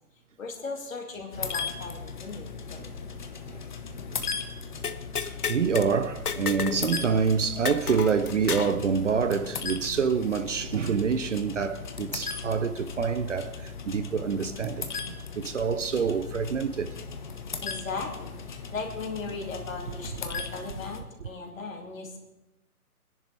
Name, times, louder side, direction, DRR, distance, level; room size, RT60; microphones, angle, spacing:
voice 1, 0.4-2.8 4.2-4.4 17.6-22.2, left 3 dB, 60° left, 2.5 m, -37 dB
sound 1, 1.3-21.0, left 5 dB, 30° left, 0.8 m, -38 dB
sound 2, 4.8-5.9 6.3-6.8 7.1-7.2 7.6-8.8, left 6 dB, 75° left, 1.0 m, -31 dB
voice 2, 5.2-17.0, right 6 dB, 55° right, 0.7 m, -27 dB
22.0 x 10.5 x 3.4 m
figure-of-eight pair, 145°, 45 cm